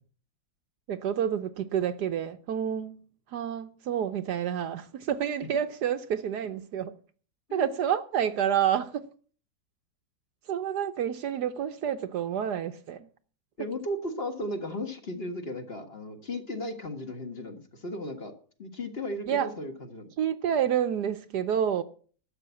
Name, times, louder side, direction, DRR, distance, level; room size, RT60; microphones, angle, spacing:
voice 1, 0.9-3.0 3.3-6.9 7.5-9.1 10.5-13.1 19.3-19.5 20.2-21.8, right 9 dB, 65° right, 1.3 m, -29 dB
voice 2, 13.6-18.3 18.6-20.1, left 1 dB, 35° left, 1.7 m, -35 dB
12.5 x 7.8 x 8.3 m
omnidirectional pair, 2.0 m